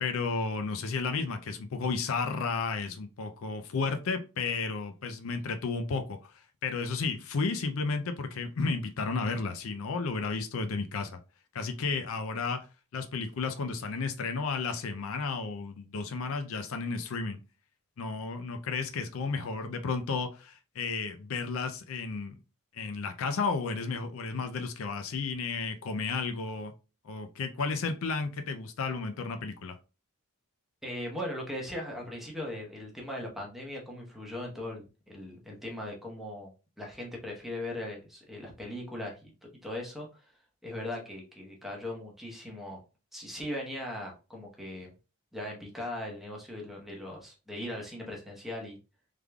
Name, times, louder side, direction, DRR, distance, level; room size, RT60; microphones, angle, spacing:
voice 1, 0.0-6.2 6.6-11.2 11.5-12.7 12.9-17.4 18.0-22.3 22.7-26.7 27.0-29.7, left 4 dB, 65° left, 7 dB, 0.4 m, -32 dB
voice 2, 30.8-36.5 36.8-39.3 39.6-40.3 40.6-42.8 43.1-44.9 45.3-48.8, left 1 dB, ahead, -1 dB, 0.9 m, -39 dB
3.5 x 3.3 x 2.2 m, 0.32 s
head